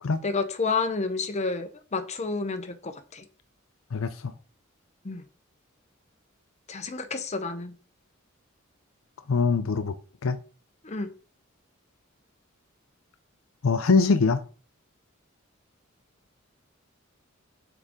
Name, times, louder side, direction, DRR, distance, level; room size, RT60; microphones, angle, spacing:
voice 1, 0.2-3.2 5.0-5.2 6.7-7.7 10.8-11.1, left 4 dB, 35° left, 0.8 m, -30 dB
voice 2, 3.9-4.3 9.3-9.9 10.2-10.4 13.6-14.4, left 4 dB, 75° left, 0.5 m, -23 dB
6.5 x 5.0 x 3.6 m
head